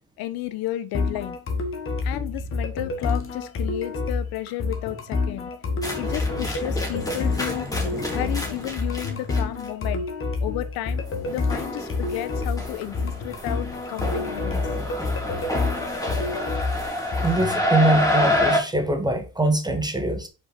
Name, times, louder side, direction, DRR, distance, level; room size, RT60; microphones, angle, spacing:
voice 1, 0.2-1.4 2.0-5.6 5.9-7.8 8.1-14.5, left 15 dB, 65° left, 1.0 m, -32 dB
sound 1, 0.9-17.6, left 3 dB, 35° left, 1.5 m, -28 dB
sound 2, 5.8-9.6 11.0-18.6, left 1 dB, 10° left, 2.3 m, -28 dB
voice 2, 17.2-20.3, right 2 dB, 10° right, 0.9 m, -23 dB
5.3 x 4.4 x 4.4 m
supercardioid pair, 105°, 39 cm